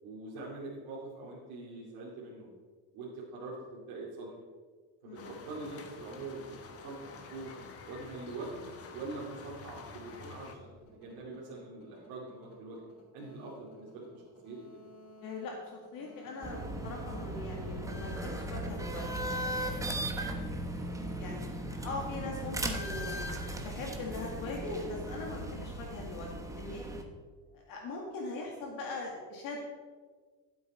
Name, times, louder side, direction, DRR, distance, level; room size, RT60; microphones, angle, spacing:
voice 1, 0.0-2.5 2.9-4.3 5.0-8.6 8.9-12.8 13.1-14.8, right 3 dB, 65° right, -6 dB, 2.6 m, -44 dB
sound 1, 5.1-10.5, left 5 dB, 35° left, 1.2 m, -49 dB
sound 2, 10.1-23.8, left 1 dB, 75° left, 3.4 m, -54 dB
voice 2, 15.2-20.7 21.0-26.8 27.5-29.6, left 3 dB, 55° left, 0 dB, 2.0 m, -41 dB
sound 3, 16.4-27.0, right 1 dB, 10° right, 1.0 m, -37 dB
13.5 x 8.1 x 4.3 m, 1.5 s
cardioid pair, 140°, 40 cm